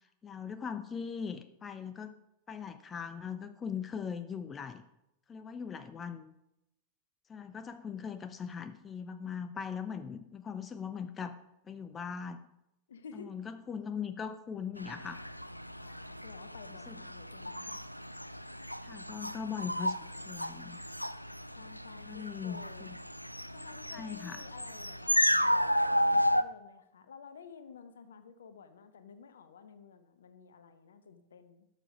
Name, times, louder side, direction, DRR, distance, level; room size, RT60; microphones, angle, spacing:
voice 1, 0.0-2.1 2.5-4.8 5.3-6.4 7.3-11.4 11.6-12.4 13.1-15.2 16.9-17.0 18.8-20.0 20.2-20.8 22.1-22.9 23.9-24.4, left 7 dB, 20° left, 11 dB, 0.5 m, -40 dB
voice 2, 12.9-13.3 15.8-17.8 21.6-22.9 23.5-31.7, left 6 dB, 65° left, 11 dB, 0.9 m, -52 dB
sound 1, 14.8-26.4, equal, 90° left, 0.3 m, -33 dB
12.0 x 6.9 x 5.3 m, 0.89 s
figure-of-eight pair, 90°, 0 cm